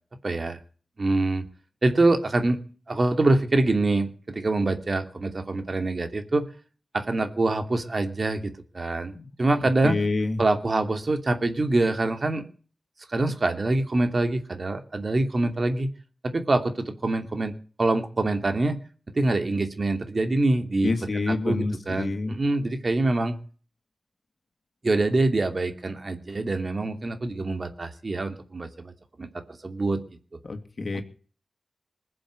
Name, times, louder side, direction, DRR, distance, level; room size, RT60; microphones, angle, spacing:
voice 1, 0.2-0.6 1.0-1.4 1.8-2.6 2.9-6.4 6.9-9.9 10.4-12.4 13.1-15.9 16.2-18.8 19.1-20.9 21.3-23.4 24.8-28.9 29.2-29.3 29.6-30.0, right 2 dB, 50° right, 7 dB, 2.8 m, -25 dB
voice 2, 9.6-10.4 20.8-22.4 30.4-31.0, left 3 dB, 60° left, 5 dB, 2.8 m, -28 dB
21.0 x 7.8 x 8.2 m, 0.41 s
cardioid pair, 50°, 0 cm